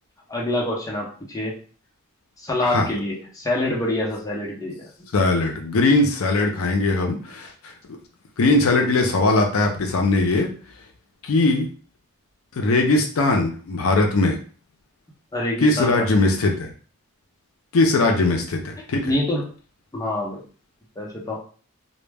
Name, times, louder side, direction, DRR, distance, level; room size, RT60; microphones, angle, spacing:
voice 1, 0.3-1.5 2.4-4.9 15.3-16.2 19.0-19.4 19.9-20.4 21.0-21.4, left 1 dB, 15° left, -3 dB, 0.6 m, -26 dB
voice 2, 5.1-7.5 7.9-8.0 8.4-10.5 11.2-11.7 12.5-14.4 15.6-16.7 17.7-19.1, left 2 dB, 80° left, 3 dB, 0.5 m, -20 dB
2.1 x 2.0 x 3.3 m, 0.40 s
head